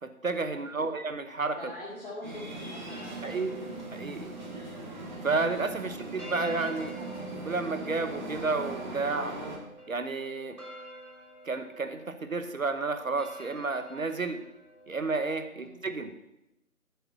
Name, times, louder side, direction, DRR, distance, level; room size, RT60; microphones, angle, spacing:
voice 1, 0.0-1.6 3.2-3.5 3.9-4.3 5.2-6.9 7.4-9.4 9.9-10.6 11.5-14.4 14.9-16.1, right 3 dB, 65° right, 8 dB, 1.0 m, -31 dB
voice 2, 0.5-1.0 1.6-3.4 15.5-15.8, left 1 dB, 40° left, -6 dB, 2.3 m, -44 dB
sound 1, 2.2-9.6, right 2 dB, 30° right, 1.6 m, -40 dB
sound 2, 2.9-15.4, right 1 dB, 85° right, 2.7 m, -49 dB
7.8 x 6.9 x 8.3 m, 0.87 s
figure-of-eight pair, 155°, 43 cm